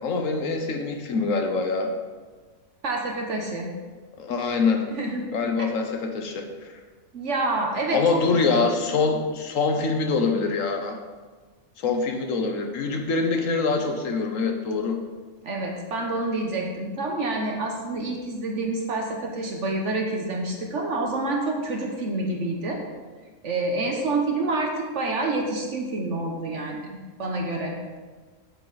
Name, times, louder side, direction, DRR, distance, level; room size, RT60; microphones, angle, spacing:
voice 1, 0.0-1.9 4.2-4.8 5.3-6.7 7.9-11.0 11.8-15.0, left 4 dB, 75° left, 4 dB, 1.4 m, -24 dB
voice 2, 2.8-3.7 4.9-5.3 5.6-5.7 7.1-8.2 15.4-22.8 23.4-27.8, right 2 dB, 65° right, 1 dB, 1.3 m, -28 dB
8.1 x 7.7 x 4.0 m, 1.4 s
omnidirectional pair, 1.4 m